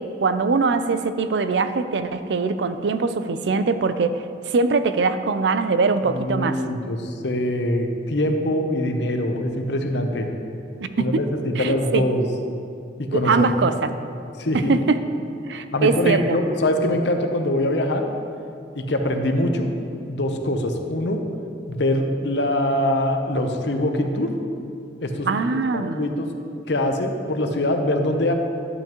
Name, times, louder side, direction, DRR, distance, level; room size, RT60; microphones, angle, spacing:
voice 1, 0.0-4.2 4.5-6.6 10.8-11.1 11.6-12.0 13.1-13.9 14.5-15.0 15.5-16.4 25.3-26.0, right 4 dB, 70° right, 11 dB, 0.4 m, -22 dB
voice 2, 6.0-10.3 11.0-12.3 13.0-13.7 14.4-14.8 15.7-18.1 18.7-19.7 20.1-21.2 21.7-24.3 25.0-25.3 25.7-26.3 26.7-28.3, left 1 dB, 70° left, 5 dB, 0.8 m, -23 dB
11.0 x 7.9 x 3.0 m, 2.5 s
head